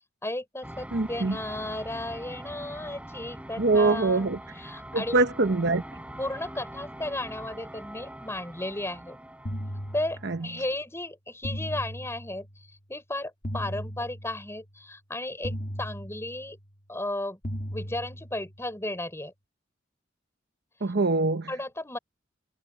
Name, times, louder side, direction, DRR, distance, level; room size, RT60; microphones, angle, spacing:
voice 1, 0.2-4.3 4.6-5.2 6.2-9.2 9.9-12.5 12.9-16.6 16.9-17.4 17.7-19.3 21.5-22.0, left 1 dB, 15° left, 6.9 m, -34 dB
sound 1, 0.6-10.6, right 1 dB, 5° right, 6.2 m, -43 dB
voice 2, 0.9-1.4 3.6-4.4 4.9-5.8 10.2-10.4 20.8-21.5, right 3 dB, 60° right, 0.9 m, -24 dB
sound 2, 9.5-10.6 11.4-12.6 13.4-14.6 15.4-16.6 17.4-18.6, equal, 45° left, 2.4 m, -37 dB
head